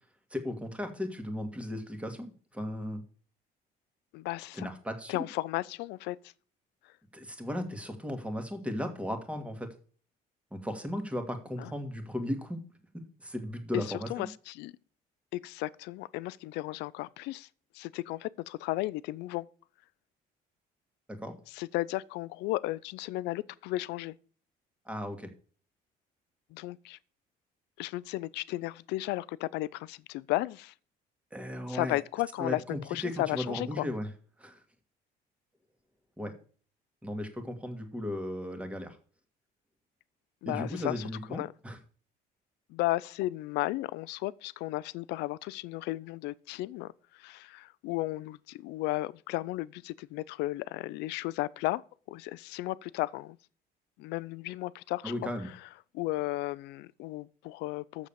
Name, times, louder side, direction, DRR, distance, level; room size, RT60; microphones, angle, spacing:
voice 1, 0.3-3.0 4.5-5.2 7.1-9.7 10.5-12.6 12.9-14.3 21.1-21.3 24.9-25.3 31.3-32.0 32.4-34.1 34.4-34.6 36.2-36.3 37.0-39.0 40.5-41.8 55.0-55.5, left 1 dB, 5° right, 1.9 m, -36 dB
voice 2, 4.1-4.7 5.1-6.2 11.6-11.7 13.7-14.7 15.3-17.5 17.7-19.5 21.5-24.1 26.5-27.0 27.8-30.7 31.7-33.8 40.4-41.0 41.3-41.5 42.7-46.9 47.2-51.8 52.1-53.4 54.0-55.3 55.9-58.1, left 18 dB, 90° left, 0.5 m, -34 dB
7.3 x 6.4 x 6.8 m
cardioid pair, 110°, 17 cm